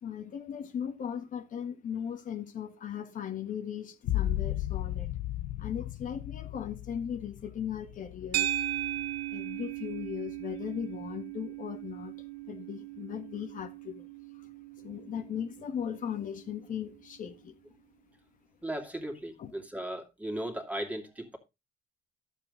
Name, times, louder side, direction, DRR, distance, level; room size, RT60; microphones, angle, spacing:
voice 1, 0.0-5.1 5.5-8.6 9.3-17.5 19.4-19.5, left 8 dB, 50° left, 1.6 m, -38 dB
sound 1, 4.0-9.5 10.0-10.6, left 13 dB, 85° left, 0.7 m, -35 dB
sound 2, 8.3-16.8, right 13 dB, 75° right, 0.8 m, -38 dB
voice 2, 18.6-21.4, right 1 dB, 10° right, 2.6 m, -37 dB
12.0 x 7.5 x 3.8 m
cardioid pair, 110°, 17 cm